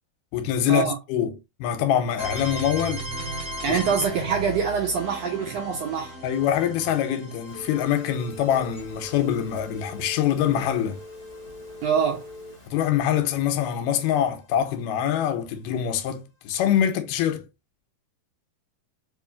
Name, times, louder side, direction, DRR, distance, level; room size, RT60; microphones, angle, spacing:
voice 1, 0.3-3.1 3.7-3.8 6.2-11.0 12.7-17.5, left 10 dB, 85° left, 2.2 m, -24 dB
sound 1, 2.2-11.9, equal, 25° right, 1.6 m, -37 dB
voice 2, 3.6-6.2 11.8-12.3, right 6 dB, 80° right, 1.5 m, -25 dB
Telephone, 7.5-12.7, left 2 dB, 20° left, 0.8 m, -42 dB
4.8 x 3.1 x 2.3 m
omnidirectional pair, 3.9 m